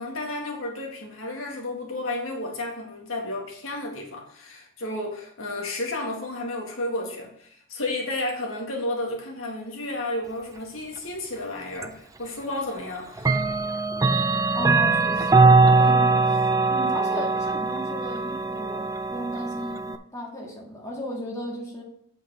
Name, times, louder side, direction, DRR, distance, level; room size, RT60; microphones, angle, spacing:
voice 1, 0.0-13.4 15.2-15.3, left 2 dB, 70° left, 1.8 m, -32 dB
Clock, 11.8-11.9 13.2-20.0, right 3 dB, 15° right, 0.4 m, -21 dB
voice 2, 14.5-21.8, equal, 15° left, 1.9 m, -35 dB
8.0 x 7.9 x 3.5 m
head